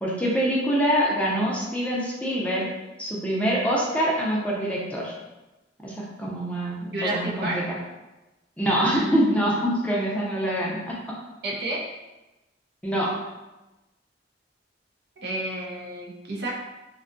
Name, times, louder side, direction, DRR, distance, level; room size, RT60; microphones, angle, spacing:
voice 1, 0.0-2.7 3.0-5.1 5.8-7.6 8.6-10.9 12.8-13.1, equal, 5° left, -5 dB, 0.4 m, -25 dB
voice 2, 6.9-7.6 11.4-11.8 15.2-16.5, right 1 dB, 65° right, -2 dB, 0.6 m, -30 dB
2.6 x 2.2 x 2.5 m, 1.1 s
head